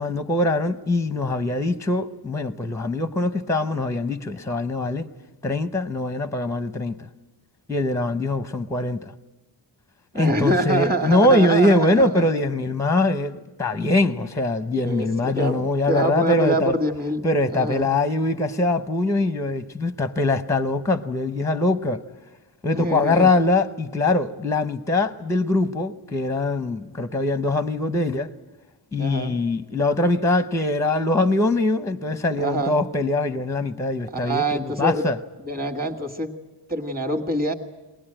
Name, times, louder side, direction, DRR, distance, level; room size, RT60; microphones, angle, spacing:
voice 1, 0.0-5.1 5.4-7.0 7.7-9.1 10.1-16.7 17.2-22.0 22.6-28.3 28.9-35.2, left 2 dB, 5° left, 0.7 m, -22 dB
voice 2, 10.1-12.3 14.7-17.9 22.7-23.3 29.0-29.3 32.4-32.8 34.1-35.1 35.4-36.3 36.7-37.5, right 1 dB, 20° right, 1.8 m, -25 dB
22.0 x 19.0 x 8.8 m
wide cardioid pair, 135°, 47 cm